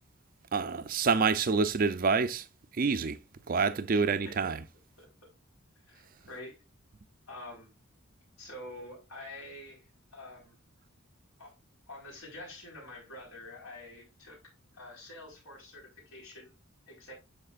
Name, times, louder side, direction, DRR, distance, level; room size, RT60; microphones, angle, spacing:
voice 1, 0.5-2.5 2.8-3.2 3.5-4.6, right 5 dB, 40° right, 0.4 m, -27 dB
voice 2, 3.9-4.5 5.0-5.1 5.9-6.6 7.3-7.7 8.4-10.6 11.4-11.5 11.9-14.4 14.7-16.5 16.9-17.1, left 1 dB, 75° left, 4.4 m, -47 dB
12.0 x 4.3 x 2.4 m
head